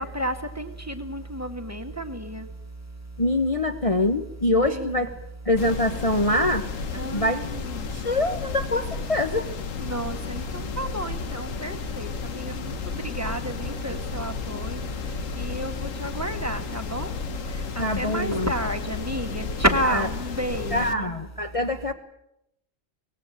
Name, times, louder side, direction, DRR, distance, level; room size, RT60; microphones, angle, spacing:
voice 1, 0.0-2.4 4.6-5.1 6.9-7.7 9.8-12.7 13.1-14.8 15.4-17.1 17.8-21.0, right 1 dB, 10° right, 6 dB, 2.0 m, -30 dB
voice 2, 3.2-5.1 5.4-6.7 7.1-7.4 7.9-9.5 17.8-18.5 19.9-20.0 20.7-21.9, left 1 dB, 30° left, 5 dB, 1.2 m, -24 dB
sound 1, 5.6-20.9, left 5 dB, 80° left, 1.6 m, -33 dB
24.0 x 19.0 x 8.8 m, 0.81 s
omnidirectional pair, 1.3 m